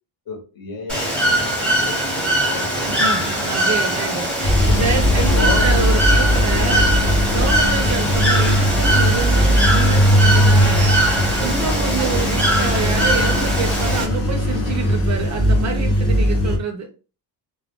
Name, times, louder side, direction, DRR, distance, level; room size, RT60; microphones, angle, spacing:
voice 1, 0.3-2.7 5.1-5.7, left 4 dB, 55° left, 1 dB, 1.0 m, -31 dB
Bird / Water, 0.9-14.0, right 1 dB, 5° left, 0.8 m, -21 dB
voice 2, 2.8-6.9 7.3-11.1 11.4-16.9, right 4 dB, 40° right, 5 dB, 0.4 m, -27 dB
sound 1, 4.4-16.6, equal, 35° left, 0.7 m, -18 dB
2.2 x 2.1 x 3.6 m, 0.34 s
cardioid pair, 155°, 43 cm